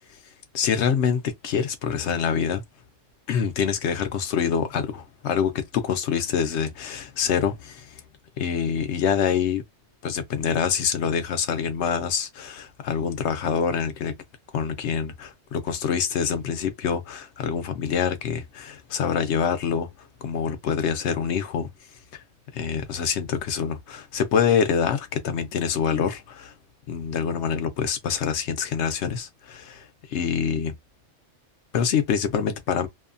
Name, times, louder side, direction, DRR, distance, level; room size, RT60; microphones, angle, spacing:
voice 1, 0.5-2.6 3.3-8.0 8.4-9.6 10.0-14.1 14.5-19.9 20.2-21.7 22.1-22.2 22.5-26.5 26.9-30.7 31.7-32.9, left 7 dB, 65° left, 0.9 m, -25 dB
2.7 x 2.2 x 2.5 m
omnidirectional pair, 1.3 m